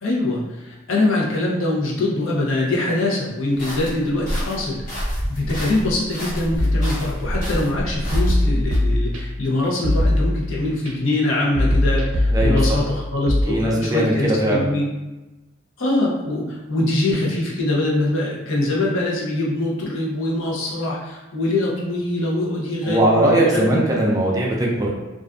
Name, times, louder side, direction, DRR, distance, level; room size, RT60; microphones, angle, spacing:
voice 1, 0.0-14.9 15.8-23.8, left 2 dB, 80° left, -4 dB, 0.7 m, -23 dB
sound 1, 3.6-8.8, equal, 45° left, 0.9 m, -28 dB
sound 2, 6.6-7.5 8.1-9.5 9.8-10.9 11.6-13.4, left 1 dB, 85° right, 0.4 m, -20 dB
voice 2, 12.3-12.8 13.5-14.7 22.8-24.9, right 1 dB, 20° right, -3 dB, 0.4 m, -19 dB
2.4 x 2.2 x 2.4 m, 1.1 s
head